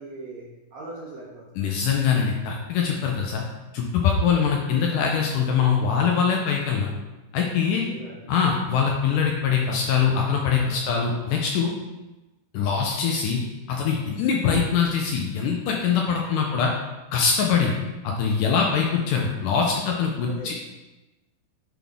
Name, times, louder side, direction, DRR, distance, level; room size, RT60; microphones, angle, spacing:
voice 1, 0.0-1.7 7.7-8.3 10.6-11.4 16.3-16.6 20.2-20.6, right 2 dB, 70° right, -5 dB, 1.7 m, -42 dB
voice 2, 1.6-3.4 3.7-6.9 7.3-7.8 8.3-11.7 12.5-13.4 13.7-16.7 17.1-17.7 18.0-20.6, left 6 dB, 75° left, 0 dB, 2.0 m, -23 dB
9.3 x 4.1 x 3.6 m, 1.1 s
omnidirectional pair, 4.2 m